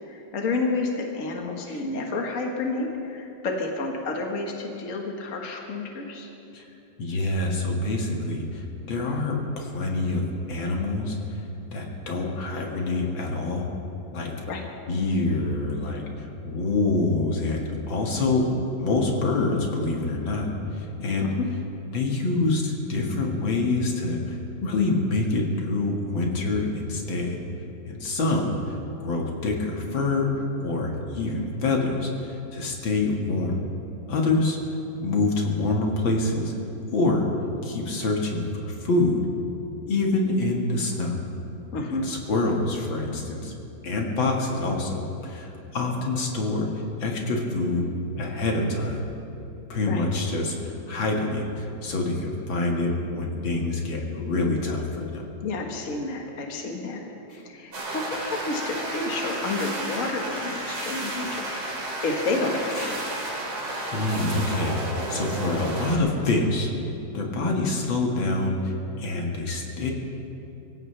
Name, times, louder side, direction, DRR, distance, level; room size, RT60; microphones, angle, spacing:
voice 1, 0.0-6.3 14.5-14.6 21.2-21.5 41.7-42.0 49.9-50.0 55.4-57.0 57.4-61.7 62.0-63.0, left 3 dB, 45° left, 1 dB, 1.8 m, -30 dB
voice 2, 7.0-11.4 11.7-13.7 14.1-14.3 14.9-21.3 21.9-27.4 27.9-28.8 29.0-33.6 34.1-34.6 35.0-36.5 36.9-37.3 37.6-39.2 39.9-41.1 41.9-43.5 43.8-47.9 48.1-49.1 49.7-55.3 57.3-57.5 62.8-62.9 63.9-64.8 65.1-66.9 67.1-69.9, left 2 dB, 75° left, 0 dB, 2.6 m, -26 dB
sound 1, 57.7-66.0, right 1 dB, 65° right, 3.4 m, -32 dB
24.5 x 16.0 x 3.4 m, 2.8 s
omnidirectional pair, 2.1 m